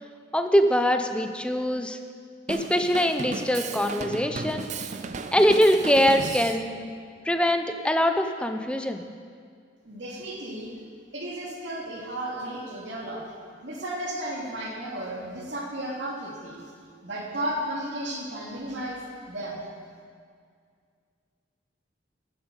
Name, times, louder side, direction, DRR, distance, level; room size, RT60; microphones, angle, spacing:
voice 1, 0.3-2.0 2.5-4.9 5.3-6.8 7.2-9.0, equal, 5° left, 6 dB, 0.6 m, -23 dB
Drum kit, 2.5-6.7, right 4 dB, 40° right, 0.5 m, -34 dB
voice 2, 9.8-10.7 11.1-13.2 13.6-16.6 17.0-19.0 19.3-19.6, right 1 dB, 65° right, -3 dB, 2.6 m, -34 dB
15.0 x 7.4 x 5.3 m, 2.1 s
head